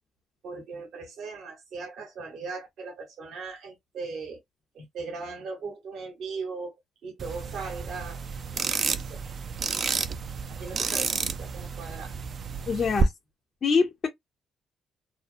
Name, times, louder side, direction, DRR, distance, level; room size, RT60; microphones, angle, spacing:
voice 1, 0.4-4.4 4.7-6.8 7.0-8.2 8.9-9.2 10.5-12.1, right 4 dB, 70° right, 1.2 m, -38 dB
sound 1, 7.2-13.0, right 6 dB, 55° right, 0.4 m, -31 dB
voice 2, 12.7-13.1 13.6-14.1, left 5 dB, 50° left, 0.6 m, -24 dB
2.7 x 2.0 x 2.5 m
supercardioid pair, 55°, 0 cm